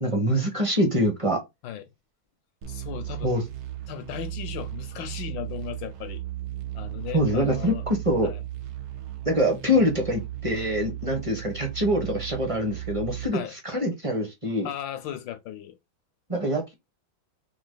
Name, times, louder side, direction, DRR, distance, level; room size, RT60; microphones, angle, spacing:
voice 1, 0.0-1.4 3.2-3.4 7.1-8.3 9.2-13.4 13.6-14.7 16.3-16.7, equal, 25° right, 0.7 m, -24 dB
sound 1, 2.6-13.3, right 13 dB, 80° right, 1.6 m, -36 dB
voice 2, 2.7-3.3 3.9-6.2 6.7-7.9 8.2-8.4 13.3-13.5 14.6-15.8, left 10 dB, 75° left, 1.2 m, -36 dB
3.9 x 2.9 x 3.8 m
omnidirectional pair, 2.3 m